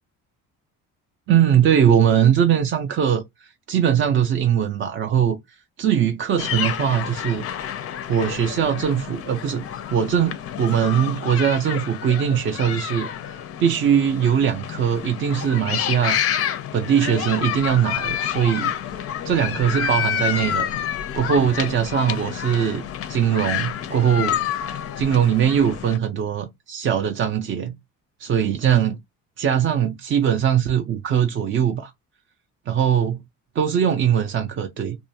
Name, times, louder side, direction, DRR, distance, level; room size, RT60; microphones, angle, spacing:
voice 1, 1.3-3.2 3.7-5.4 5.8-7.4 8.1-9.6 9.9-16.2 16.7-18.7 19.2-20.7 21.1-24.4 25.0-27.8 28.2-29.0 29.4-31.9 32.7-33.2 33.6-35.0, right 8 dB, 35° right, 0.4 m, -21 dB
sound 1, 6.4-26.0, left 9 dB, 45° left, 0.4 m, -29 dB
2.4 x 2.2 x 2.7 m
cardioid pair, 110°, 34 cm